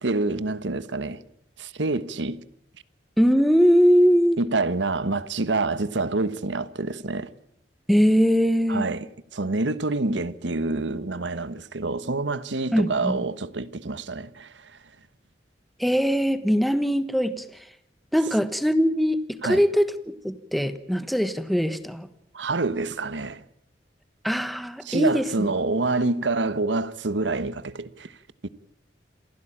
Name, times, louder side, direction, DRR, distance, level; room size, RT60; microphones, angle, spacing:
voice 1, 0.0-1.2 1.6-2.4 4.4-7.3 8.7-14.7 19.4-19.6 22.3-23.4 24.8-28.1 28.4-28.5, right 3 dB, 85° right, 1.2 m, -27 dB
voice 2, 3.2-4.4 7.9-8.9 12.7-13.2 15.8-17.7 18.1-22.1 24.2-25.5, equal, ahead, 1.2 m, -21 dB
28.0 x 16.0 x 8.8 m
head